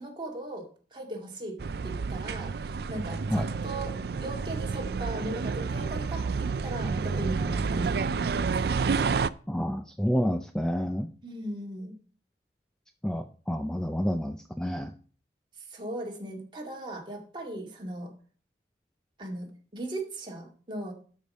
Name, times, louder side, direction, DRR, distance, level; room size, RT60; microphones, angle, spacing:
voice 1, 0.0-1.6 1.8-8.8 11.2-11.9 15.6-18.1 19.2-20.9, right 1 dB, 25° right, 0 dB, 2.1 m, -38 dB
sound 1, 1.6-9.3, right 5 dB, 60° right, 0.4 m, -30 dB
voice 2, 9.5-11.1 13.0-14.9, equal, 5° left, 7 dB, 0.4 m, -29 dB
12.0 x 5.0 x 5.3 m, 0.43 s
head